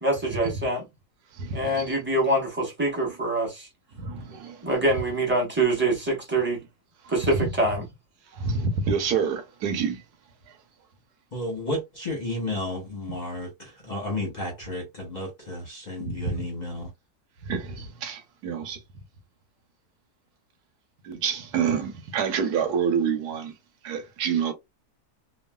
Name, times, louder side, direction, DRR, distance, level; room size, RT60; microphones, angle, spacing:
voice 1, 0.0-0.9 1.5-3.7 4.6-6.6 7.1-7.8, right 1 dB, 10° right, 0.9 m, -25 dB
voice 2, 1.4-1.9 4.0-4.6 8.3-10.0 16.0-16.2 17.4-18.8 21.0-23.5 23.8-24.5, right 6 dB, 90° right, 1.3 m, -27 dB
voice 3, 11.3-16.9, left 1 dB, 35° left, 0.8 m, -32 dB
3.0 x 2.3 x 2.2 m
omnidirectional pair, 1.7 m